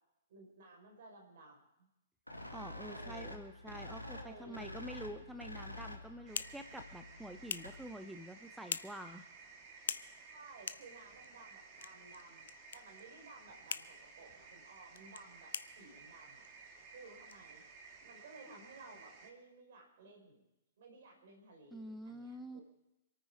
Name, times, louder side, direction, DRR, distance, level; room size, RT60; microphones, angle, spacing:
voice 1, 0.3-1.9 2.9-3.4 4.0-4.8 10.3-16.5 16.9-17.6 18.0-20.4 20.8-22.6, right 3 dB, 50° right, 1 dB, 5.0 m, -56 dB
sound 1, 2.3-8.0, left 1 dB, 90° right, 1.9 m, -48 dB
voice 2, 2.5-9.2 21.7-22.6, right 1 dB, 5° right, 8 dB, 0.6 m, -47 dB
sound 2, 5.8-18.2, left 7 dB, 60° left, 0.7 m, -48 dB
sound 3, 6.3-19.3, right 5 dB, 30° right, 1.9 m, -56 dB
26.5 x 9.3 x 4.9 m, 0.91 s
figure-of-eight pair, 115°, 0 cm